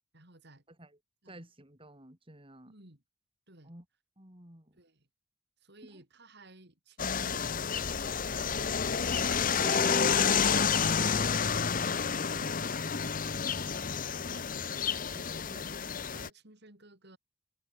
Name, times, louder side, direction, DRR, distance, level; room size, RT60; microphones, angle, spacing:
voice 1, 0.1-0.6 1.2-1.4 2.6-3.0 3.5-3.7 4.7-5.1 5.6-7.5 8.2-9.4 15.1-15.7 16.1-17.2, right 1 dB, 55° right, 5.5 m, -56 dB
voice 2, 1.3-2.7 3.6-3.8 4.2-4.7 5.8-6.0, right 1 dB, 25° right, 4.6 m, -52 dB
sound 1, 7.0-16.3, left 6 dB, 40° left, 0.9 m, -30 dB
sound 2, 9.6-11.3 11.6-11.7, left 1 dB, 25° left, 1.3 m, -39 dB
head